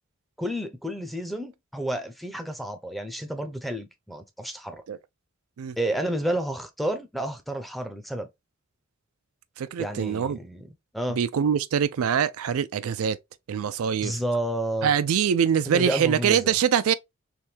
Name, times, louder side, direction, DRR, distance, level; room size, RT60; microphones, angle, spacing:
voice 1, 0.4-4.8 5.8-8.3 9.8-10.7 10.9-11.2 14.0-14.9 15.7-16.5, right 1 dB, ahead, 0.6 m, -30 dB
voice 2, 9.6-10.4 11.1-13.2 13.5-14.2 14.8-16.9, right 8 dB, 90° right, 0.4 m, -24 dB
3.5 x 2.6 x 2.7 m
head